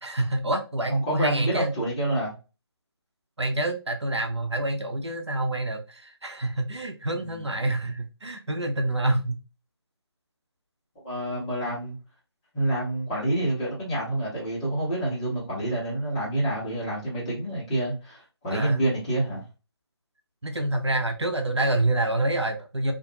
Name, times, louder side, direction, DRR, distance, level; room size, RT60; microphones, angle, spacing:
voice 1, 0.0-1.7 3.4-9.4 18.5-18.9 20.4-22.9, right 1 dB, 80° right, 6 dB, 0.7 m, -27 dB
voice 2, 0.9-2.3 7.1-7.4 11.0-11.9 12.5-19.4, right 1 dB, 15° left, -7 dB, 1.0 m, -27 dB
2.5 x 2.5 x 2.7 m, 0.31 s
figure-of-eight pair, 150°, 14 cm